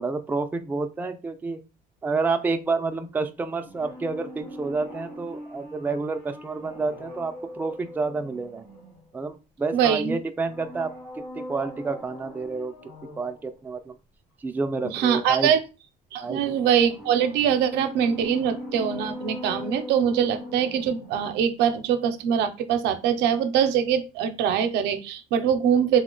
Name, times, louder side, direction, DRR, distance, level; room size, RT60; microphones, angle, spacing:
voice 1, 0.0-1.6 2.0-8.6 9.1-12.7 13.2-14.0 14.4-15.5 16.2-16.7, right 4 dB, 10° right, 6 dB, 0.3 m, -29 dB
sound 1, 3.6-9.3 10.4-13.4 16.2-21.4 21.7-21.8, left 1 dB, 90° left, 1.1 m, -40 dB
voice 2, 9.7-10.2 14.9-15.6 16.1-26.0, right 8 dB, 85° right, 8 dB, 0.5 m, -23 dB
2.8 x 2.1 x 3.8 m, 0.30 s
cardioid pair, 110°, 17 cm